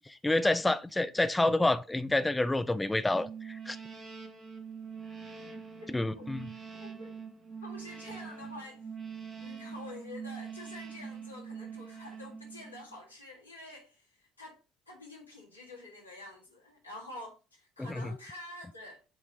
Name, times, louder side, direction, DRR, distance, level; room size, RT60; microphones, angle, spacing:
voice 1, 0.0-3.8 5.9-6.5 17.8-18.1, left 2 dB, 10° left, 0.4 m, -28 dB
sound 1, 3.1-13.0, right 6 dB, 35° right, 1.7 m, -44 dB
voice 2, 5.8-6.3 6.7-7.2 7.6-8.9 9.4-19.0, left 2 dB, 90° left, 1.8 m, -48 dB
8.1 x 3.2 x 5.2 m
figure-of-eight pair, 55°, 0 cm